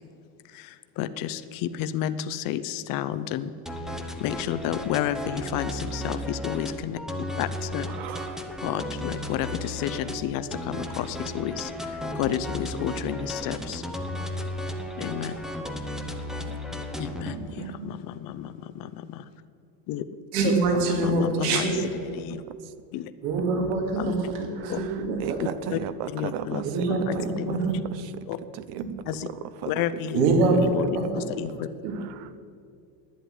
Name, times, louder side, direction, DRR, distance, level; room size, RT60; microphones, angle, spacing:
voice 1, 0.4-3.5 4.2-7.9 8.2-8.3 8.6-13.8 15.0-15.3 16.5-16.6 17.0-19.2 19.9-20.0 20.4-21.9 22.1-22.4 22.9-23.1 24.0-24.2 24.7-24.8 25.7-25.8 26.1-26.6 26.9-27.6 28.3-28.4 29.1-29.3 29.6-31.7, left 11 dB, 45° left, 13 dB, 0.7 m, -31 dB
sound 1, 3.7-17.4, left 1 dB, ahead, 0.7 m, -34 dB
voice 2, 7.9-8.5 17.3-18.0 20.4-20.5 24.6-26.9 27.2-27.3 27.9-28.1 28.7-28.8 29.6-30.0 32.0-32.3, right 10 dB, 55° right, 13 dB, 0.7 m, -36 dB
voice 3, 20.3-22.1 23.2-25.4 26.7-27.7 30.1-30.9 31.8-32.0, right 3 dB, 75° right, 2 dB, 2.9 m, -24 dB
11.5 x 9.8 x 9.2 m, 2.3 s
cardioid pair, 145°, 47 cm